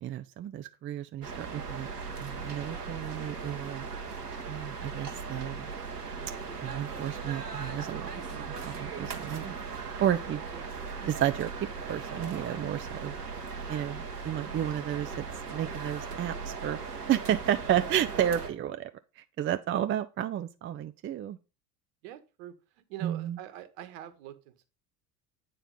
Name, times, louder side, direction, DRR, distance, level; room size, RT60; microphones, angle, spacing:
voice 1, 0.0-1.9 2.2-3.9 4.5-5.7 6.6-9.5 10.0-10.4 11.0-11.5 11.9-13.1 13.7-15.2 15.5-16.8 17.1-18.9 19.2-21.4 23.0-23.4, right 11 dB, 25° right, 0.6 m, -32 dB
sound 1, 1.2-18.5, right 5 dB, 85° right, 1.1 m, -38 dB
voice 2, 22.0-24.7, right 12 dB, 60° right, 1.4 m, -45 dB
9.1 x 4.4 x 5.3 m
figure-of-eight pair, 65°, 46 cm